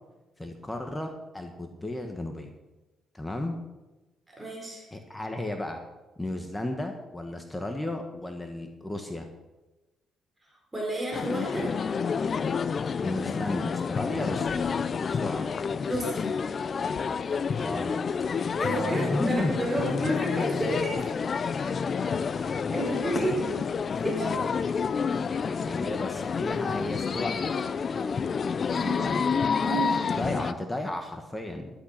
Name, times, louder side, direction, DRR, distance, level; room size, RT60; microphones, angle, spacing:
voice 1, 0.4-2.5 3.1-3.6 4.9-5.8 6.2-9.3 13.0-14.6 15.1-15.5 17.5-18.0 18.6-20.0 20.4-20.7 21.9-22.3 22.7-22.8 25.5-27.7 28.9-29.3 30.1-31.7, left 1 dB, 15° left, 4 dB, 1.6 m, -34 dB
voice 2, 4.3-4.8 10.7-11.7 15.9-16.3 18.6-21.1 22.7-23.6 23.9-24.4 28.8-30.2, right 1 dB, 15° right, -1 dB, 4.7 m, -31 dB
sound 1, 11.1-30.5, left 6 dB, 45° left, 0.6 m, -29 dB
12.0 x 11.5 x 5.9 m, 1.1 s
cardioid pair, 90°, 0 cm